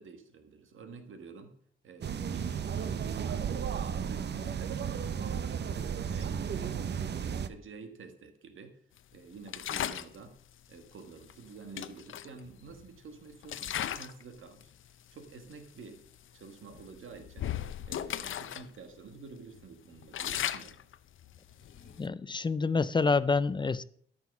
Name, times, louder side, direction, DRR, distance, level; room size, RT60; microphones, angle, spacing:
voice 1, 0.0-1.6 1.8-8.8 9.1-10.4 10.7-14.7 15.1-16.1 16.3-17.5 17.9-20.8, right 4 dB, 90° right, 7 dB, 1.6 m, -49 dB
sound 1, 2.0-7.5, right 7 dB, 60° right, 0.7 m, -34 dB
sound 2, 9.5-10.2 11.3-11.4 11.8-13.0 13.4-14.2 14.6-14.9 15.5-15.6 16.0-16.2 16.7-18.7 19.0-19.1 19.6-22.1, left 10 dB, 90° left, 0.6 m, -36 dB
sound 3, 21.3-21.9, left 5 dB, 45° left, 2.0 m, -59 dB
voice 2, 22.0-23.8, left 4 dB, 25° left, 16 dB, 0.4 m, -27 dB
13.5 x 6.1 x 5.9 m, 0.62 s
wide cardioid pair, 150°, 20 cm